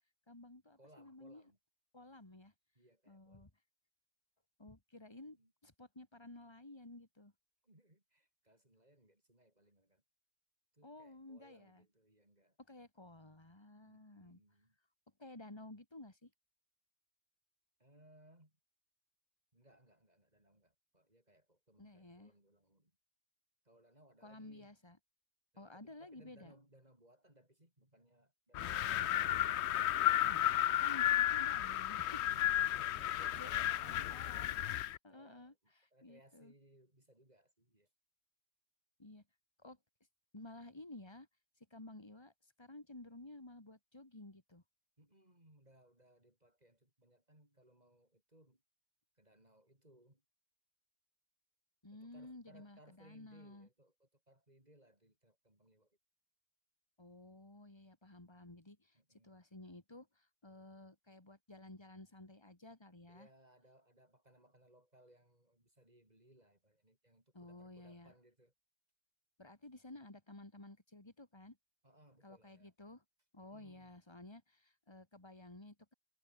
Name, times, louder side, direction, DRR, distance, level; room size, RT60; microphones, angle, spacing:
voice 1, 0.3-1.5 1.9-2.5 3.1-3.5 4.6-5.4 5.6-7.3 10.8-11.9 12.6-14.4 15.2-16.3 21.8-22.3 24.2-25.0 25.6-26.5 28.5-29.5 30.2-32.3 33.1-36.5 39.0-39.2 39.6-39.8 40.3-41.3 41.7-42.3 42.6-44.6 51.8-53.7 57.0-59.0 59.2-63.3 67.3-68.1 69.4-71.6 72.2-73.0 73.3-75.9, left 2 dB, 15° left, 2.6 m, -54 dB
voice 2, 0.8-1.6 2.7-3.5 5.1-5.5 7.6-10.0 10.7-12.6 13.8-14.8 17.8-18.5 19.5-22.9 23.6-24.7 25.5-29.5 32.3-34.5 35.1-37.9 45.0-48.6 49.2-50.2 51.9-56.0 58.9-59.4 63.1-68.5 71.8-72.7 73.5-74.0, right 1 dB, 25° right, 6.5 m, -66 dB
Wind, 28.5-35.0, left 13 dB, 70° left, 0.6 m, -33 dB
omnidirectional pair, 1.7 m